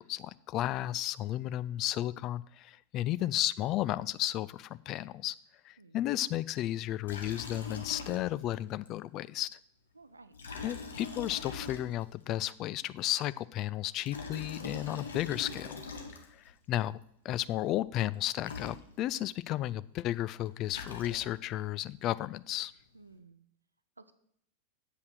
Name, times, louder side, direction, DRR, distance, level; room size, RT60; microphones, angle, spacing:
voice 1, 0.0-5.4 5.6-9.5 10.6-15.8 16.3-22.7, left 14 dB, 35° left, 17 dB, 0.3 m, -33 dB
voice 2, 3.0-3.4 5.8-6.0 9.9-10.3 22.9-23.5 24.0-24.1, right 3 dB, 80° right, 11 dB, 0.6 m, -55 dB
Liquid, 7.0-8.6 8.9-9.0 10.3-12.2 13.9-16.5 18.1-18.2 18.4-19.3 20.4-21.5, left 4 dB, 70° left, 1.2 m, -43 dB
8.0 x 5.6 x 6.3 m, 0.69 s
figure-of-eight pair, 90°, 0 cm